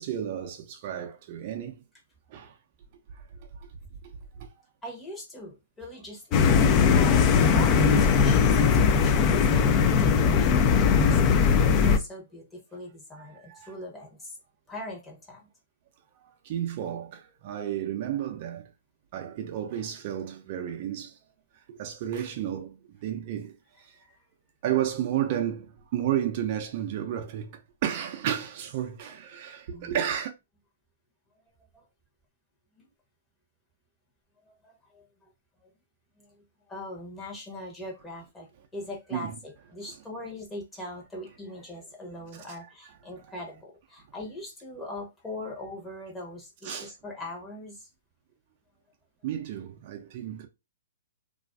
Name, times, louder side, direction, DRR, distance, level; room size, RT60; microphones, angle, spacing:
voice 1, 0.0-1.8 2.3-2.5 3.4-3.7 4.0-4.5 11.5-11.6 13.2-13.7 16.4-18.6 19.1-21.2 21.7-23.9 24.6-30.3 39.1-39.4 42.3-42.7 43.2-43.3 46.6-46.9 49.2-50.5, right 10 dB, 45° right, 0.4 m, -32 dB
voice 2, 4.8-6.2 6.9-14.4 14.7-15.4 23.9-24.2 29.7-30.0 32.8-32.9 34.6-35.1 36.2-36.3 36.7-38.5 38.7-47.9, left 1 dB, 15° left, 0.8 m, -41 dB
sound 1, 6.3-12.0, left 6 dB, 30° left, 0.3 m, -20 dB
2.4 x 2.3 x 2.2 m
hypercardioid pair, 125°, 0 cm